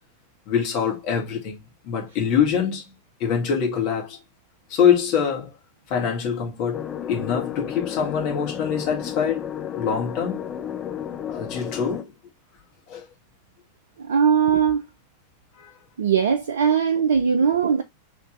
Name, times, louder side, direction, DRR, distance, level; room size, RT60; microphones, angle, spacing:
voice 1, 0.5-2.9 3.2-4.2 4.7-5.5 5.9-6.8 7.1-9.4 9.7-10.4 11.3-12.1 12.9-13.0 15.6-15.7, left 7 dB, 45° left, 1.4 m, -24 dB
sound 1, 6.7-12.0, left 9 dB, 25° left, 0.5 m, -32 dB
voice 2, 14.0-14.8 16.0-17.8, right 7 dB, 65° right, 0.3 m, -20 dB
3.3 x 2.9 x 2.4 m
figure-of-eight pair, 90°, 0 cm